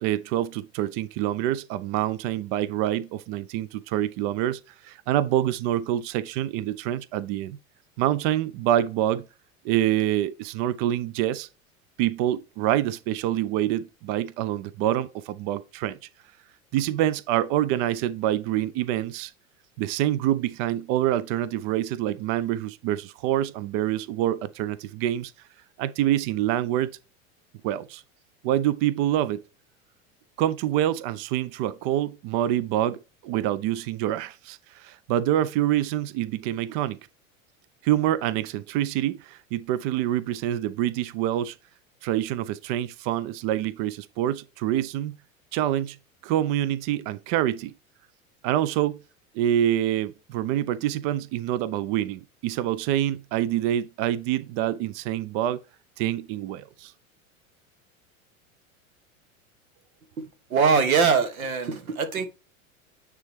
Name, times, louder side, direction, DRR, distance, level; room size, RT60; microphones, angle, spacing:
voice 1, 0.0-7.6 8.0-9.2 9.6-11.5 12.0-16.0 16.7-19.3 19.8-25.3 25.8-27.0 27.6-28.0 28.4-29.4 30.4-37.0 37.8-41.6 42.0-45.1 45.5-46.0 46.2-47.7 48.4-49.0 49.4-55.6 56.0-56.9, right 12 dB, 40° right, 0.4 m, -26 dB
voice 2, 60.5-62.3, right 5 dB, 80° right, 1.3 m, -22 dB
9.3 x 3.6 x 3.1 m
hypercardioid pair, 85°, 41 cm